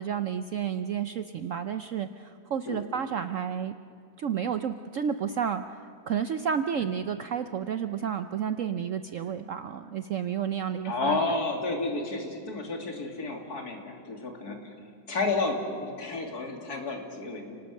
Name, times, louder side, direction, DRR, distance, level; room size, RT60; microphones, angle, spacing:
voice 1, 0.0-3.8 4.2-11.2, right 8 dB, 60° right, 10 dB, 0.8 m, -31 dB
voice 2, 10.8-14.6 15.1-17.6, left 3 dB, 60° left, 3 dB, 3.1 m, -31 dB
30.0 x 19.0 x 6.5 m, 2.6 s
omnidirectional pair, 1.9 m